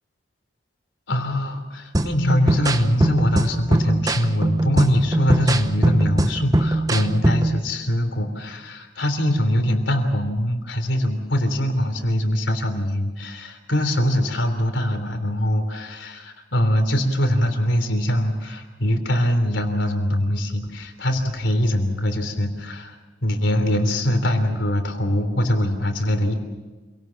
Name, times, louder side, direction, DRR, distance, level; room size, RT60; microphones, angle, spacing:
voice 1, 1.1-26.3, left 1 dB, 80° left, 6 dB, 3.3 m, -22 dB
sound 1, 1.9-7.6, right 1 dB, 20° right, 0.9 m, -21 dB
27.0 x 18.0 x 7.4 m, 1.3 s
head